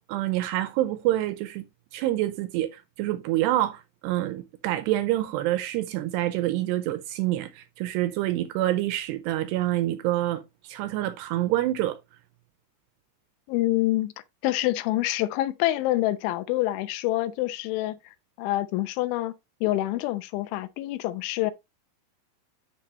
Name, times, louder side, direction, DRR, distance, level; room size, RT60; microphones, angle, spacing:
voice 1, 0.1-1.6 1.9-12.0, right 15 dB, 85° right, 2.5 m, -27 dB
voice 2, 13.5-14.1 14.4-18.0 18.4-19.3 19.6-21.5, left 16 dB, 90° left, 3.1 m, -26 dB
11.5 x 5.3 x 2.9 m
omnidirectional pair, 5.3 m